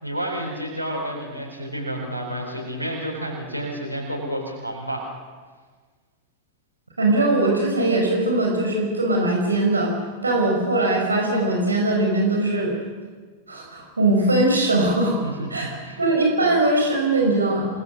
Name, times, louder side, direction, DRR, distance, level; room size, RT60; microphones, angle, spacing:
voice 1, 0.0-5.1 15.2-16.0, right 1 dB, 85° left, -2 dB, 4.2 m, -30 dB
voice 2, 7.0-9.9 10.2-12.7 13.5-15.2 15.5-15.7 16.0-17.7, right 2 dB, 80° right, 0 dB, 5.2 m, -20 dB
28.0 x 19.0 x 6.5 m, 1.5 s
figure-of-eight pair, 90°, 0 cm